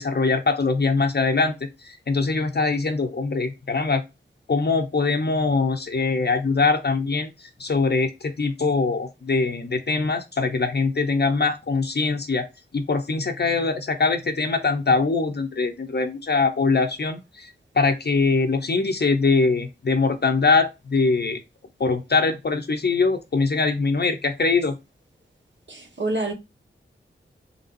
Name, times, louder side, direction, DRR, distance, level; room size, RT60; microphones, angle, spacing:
voice 1, 0.0-4.0 4.5-12.4 12.7-21.4 21.8-24.8, left 4 dB, 55° left, 0.7 m, -22 dB
voice 2, 25.7-26.3, right 2 dB, 60° right, 1.4 m, -27 dB
4.0 x 3.5 x 2.5 m
cardioid pair, 40°, 21 cm